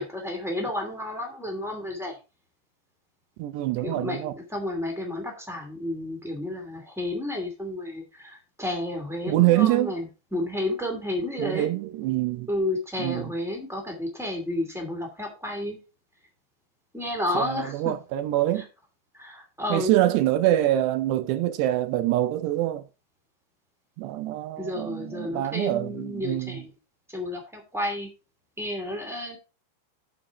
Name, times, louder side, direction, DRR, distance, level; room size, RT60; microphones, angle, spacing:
voice 1, 0.0-2.1 3.8-10.0 10.3-11.7 12.5-15.8 16.9-17.9 19.1-19.9 24.6-26.7 27.1-28.1 28.6-29.4, left 1 dB, 5° right, 0.4 m, -31 dB
voice 2, 3.4-4.3 9.2-9.9 11.4-12.5 13.0-13.3 17.4-18.7 19.7-22.8 24.0-26.6, right 14 dB, 75° right, 2.7 m, -25 dB
7.4 x 7.2 x 4.8 m
omnidirectional pair, 5.4 m